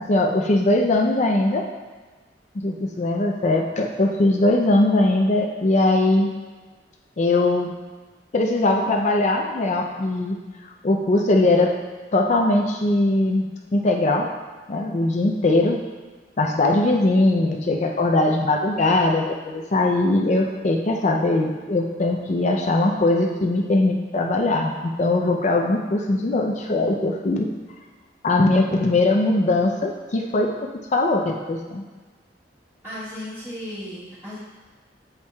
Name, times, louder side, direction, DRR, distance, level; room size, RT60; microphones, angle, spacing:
voice 1, 0.0-1.6 2.5-6.3 7.2-7.7 8.3-10.4 10.8-11.7 12.1-14.3 14.7-15.8 16.4-27.5 28.2-30.5 30.9-31.8, left 2 dB, 40° left, 1 dB, 0.5 m, -20 dB
voice 2, 32.8-34.4, left 1 dB, 15° right, -15 dB, 1.6 m, -35 dB
8.0 x 5.5 x 2.3 m, 1.3 s
head